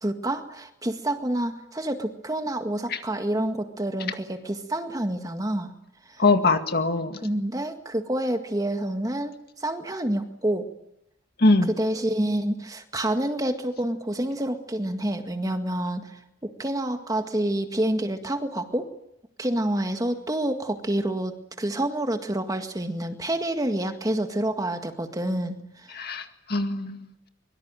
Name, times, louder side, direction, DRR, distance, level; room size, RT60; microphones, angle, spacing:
voice 1, 0.0-5.7 6.1-6.2 7.2-10.7 11.8-18.9 19.4-26.0, right 1 dB, 20° right, 7 dB, 1.9 m, -28 dB
voice 2, 6.2-7.2 11.4-11.7 25.9-27.3, left 2 dB, 55° left, 7 dB, 2.0 m, -22 dB
24.0 x 23.0 x 9.1 m, 0.81 s
head